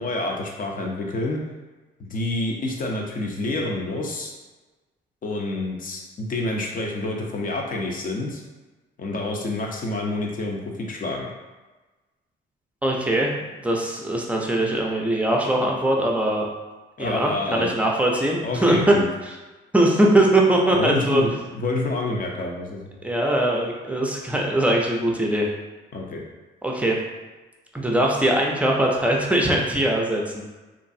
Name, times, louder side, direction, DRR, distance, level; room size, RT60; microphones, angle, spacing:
voice 1, 0.0-1.4 2.0-4.3 5.2-8.4 9.0-11.3 17.0-17.8 18.4-19.0 20.7-23.0 25.9-26.2, left 2 dB, 45° left, 0 dB, 0.6 m, -28 dB
voice 2, 12.8-16.5 17.0-18.9 19.7-21.2 23.0-25.5 26.6-27.0 27.7-30.4, right 1 dB, 5° right, -1 dB, 0.5 m, -21 dB
3.0 x 2.4 x 2.7 m, 1.2 s
cardioid pair, 90°, 20 cm